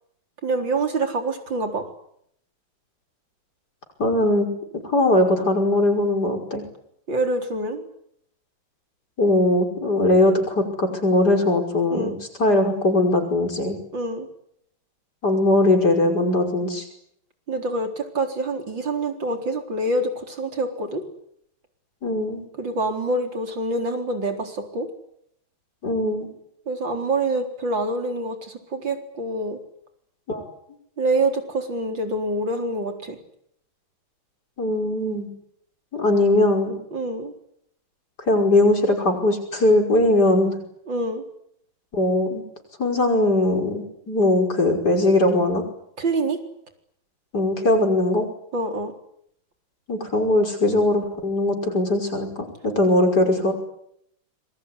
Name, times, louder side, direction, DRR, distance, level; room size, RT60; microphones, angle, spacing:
voice 1, 0.4-1.8 7.1-7.9 11.9-12.2 13.9-14.3 17.5-21.0 22.6-24.9 26.7-29.6 31.0-33.2 36.9-37.3 40.9-41.2 46.0-46.4 48.5-48.9, right 2 dB, 65° right, 5 dB, 4.8 m, -26 dB
voice 2, 4.0-4.5 4.8-6.6 9.2-13.8 15.2-16.8 22.0-22.5 25.8-26.3 30.3-30.5 34.6-35.3 35.9-36.8 38.3-40.5 41.9-42.4 42.8-45.6 47.3-48.3 49.9-53.5, left 1 dB, 50° left, 4 dB, 6.1 m, -20 dB
26.5 x 22.5 x 9.9 m, 0.73 s
omnidirectional pair, 2.2 m